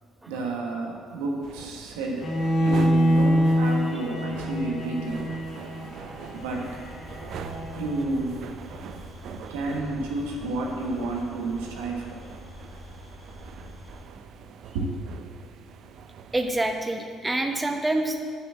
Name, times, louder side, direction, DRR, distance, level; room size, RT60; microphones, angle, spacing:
voice 1, 0.3-2.3 2.6-5.2 6.3-6.7 7.8-8.4 9.5-12.3 14.7-14.9, right 2 dB, 85° right, 0 dB, 1.4 m, -30 dB
sound 1, 1.4-16.9, right 7 dB, 65° right, 0.5 m, -43 dB
Bowed string instrument, 2.2-8.2, equal, 55° left, 2.2 m, -26 dB
sound 2, 6.3-14.0, left 2 dB, 35° left, 2.1 m, -46 dB
voice 2, 16.3-18.2, right 2 dB, 15° right, 4 dB, 1.1 m, -26 dB
7.1 x 6.7 x 7.4 m, 2.1 s
hypercardioid pair, 55°, 0 cm